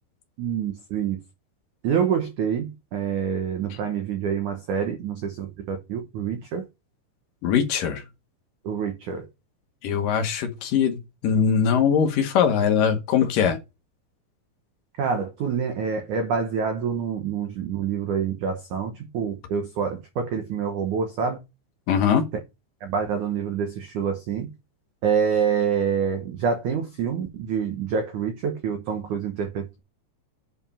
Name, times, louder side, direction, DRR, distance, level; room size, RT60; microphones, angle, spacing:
voice 1, 0.4-1.2 1.8-6.7 8.6-9.3 15.0-21.4 22.8-24.5 25.0-29.8, right 7 dB, 80° right, 1.7 m, -27 dB
voice 2, 7.4-8.0 9.8-13.6 21.9-22.2, left 7 dB, 65° left, 2.2 m, -21 dB
8.5 x 4.9 x 5.5 m
omnidirectional pair, 5.3 m